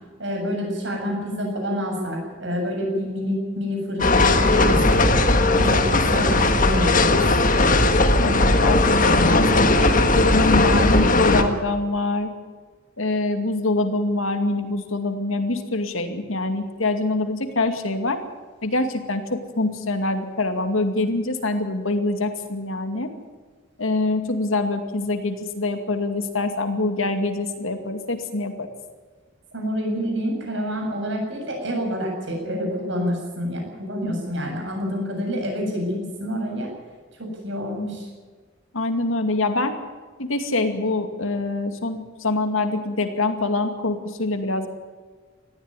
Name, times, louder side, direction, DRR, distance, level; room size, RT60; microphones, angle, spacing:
voice 1, 0.2-5.0 5.4-7.2 29.5-36.7 37.2-38.1, equal, 60° right, 1 dB, 7.8 m, -27 dB
sound 1, 4.0-11.4, left 2 dB, 40° left, 1.6 m, -18 dB
voice 2, 8.1-9.7 10.2-12.3 13.0-18.2 18.6-23.1 23.8-28.7 38.7-39.7 40.2-44.7, left 2 dB, 80° left, 6 dB, 2.4 m, -24 dB
19.0 x 14.5 x 9.9 m, 1.5 s
head